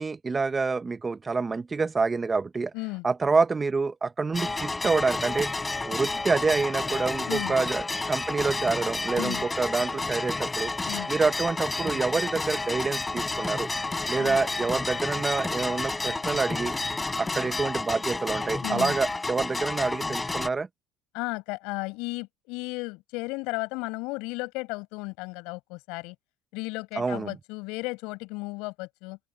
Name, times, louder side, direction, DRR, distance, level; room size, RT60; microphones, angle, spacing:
voice 1, 0.0-2.7 3.0-5.5 5.8-10.7 11.1-13.7 14.1-16.8 17.2-20.7 27.0-27.4, right 4 dB, 20° right, 0.8 m, -27 dB
voice 2, 2.7-3.1 7.3-7.6 9.2-9.4 10.9-11.1 14.2-14.4 18.6-19.0 21.1-26.2 26.5-29.2, left 25 dB, 75° left, 5.8 m, -34 dB
sound 1, 4.3-20.5, left 3 dB, 15° left, 3.6 m, -30 dB
open air
cardioid pair, 125°, 0 cm